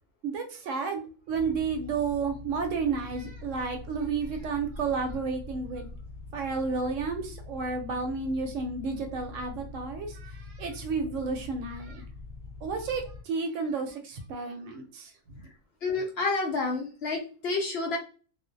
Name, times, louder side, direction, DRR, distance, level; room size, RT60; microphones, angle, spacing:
voice 1, 0.2-1.0 1.3-5.9 6.3-12.0 12.6-15.4, right 4 dB, 70° right, 5 dB, 0.9 m, -32 dB
sound 1, 1.3-13.2, left 3 dB, 50° right, 0.4 m, -44 dB
voice 2, 15.8-18.0, left 3 dB, 60° left, 0 dB, 0.7 m, -29 dB
2.4 x 2.1 x 2.6 m, 0.37 s
omnidirectional pair, 1.4 m